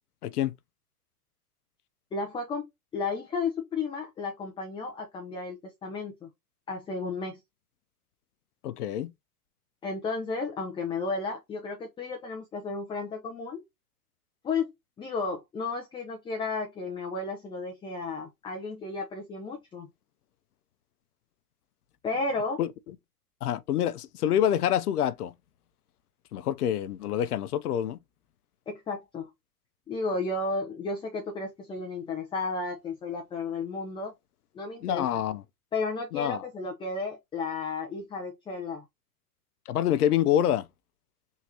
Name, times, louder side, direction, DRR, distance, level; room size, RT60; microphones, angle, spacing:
voice 1, 0.2-0.5 8.6-9.1 22.6-22.7 23.4-25.3 26.3-28.0 34.8-35.4 36.1-36.5 39.7-40.7, left 11 dB, 85° left, 0.6 m, -26 dB
voice 2, 2.1-2.6 2.9-6.3 6.7-7.4 9.8-13.6 14.4-14.7 15.0-19.9 22.0-22.6 28.7-29.3 29.9-34.1 34.5-35.2 35.7-38.8, left 3 dB, 10° left, 0.5 m, -33 dB
3.6 x 2.9 x 2.8 m
hypercardioid pair, 110°, 44 cm